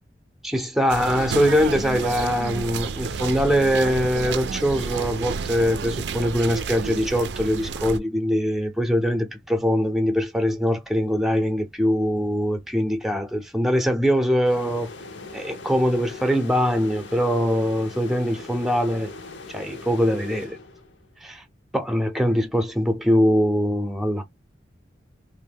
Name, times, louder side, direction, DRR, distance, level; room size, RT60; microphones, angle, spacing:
voice 1, 0.4-14.9 15.3-19.1 19.5-20.6 21.2-21.4 21.7-24.2, equal, ahead, 0.5 m, -22 dB
sound 1, 0.9-8.0, right 5 dB, 65° right, 0.4 m, -30 dB
sound 2, 14.5-21.1, left 3 dB, 80° left, 0.7 m, -40 dB
3.1 x 2.1 x 3.4 m
head